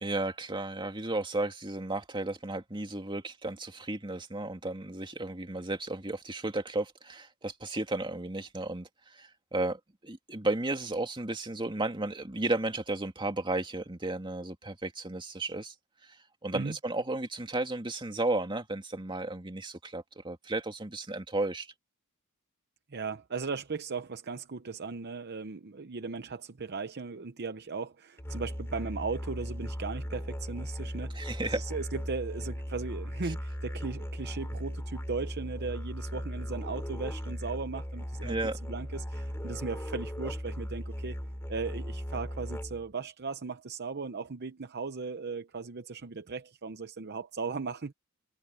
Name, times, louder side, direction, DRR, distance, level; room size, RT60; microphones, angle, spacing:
voice 1, 0.0-15.7 16.0-16.2 16.4-21.7 31.1-31.6 33.2-33.3 38.2-38.6, right 2 dB, 20° right, 2.3 m, -34 dB
voice 2, 22.9-38.4 38.7-41.2 41.5-47.9, right 4 dB, 50° right, 0.8 m, -37 dB
Musical instrument, 28.2-42.9, equal, 10° left, 3.8 m, -37 dB
head